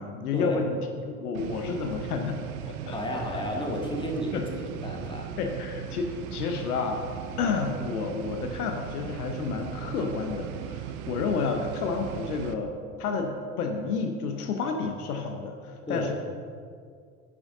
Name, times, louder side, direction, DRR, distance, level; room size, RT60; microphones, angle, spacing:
voice 1, 0.0-3.4 4.3-4.4 5.4-7.0 7.4-16.2, left 4 dB, 70° left, 5 dB, 0.9 m, -30 dB
sound 1, 1.3-12.5, right 10 dB, 65° right, 0.7 m, -38 dB
voice 2, 2.9-5.3 15.9-16.1, equal, 10° left, 0 dB, 1.8 m, -32 dB
11.0 x 7.4 x 3.7 m, 2.1 s
figure-of-eight pair, 60°, 47 cm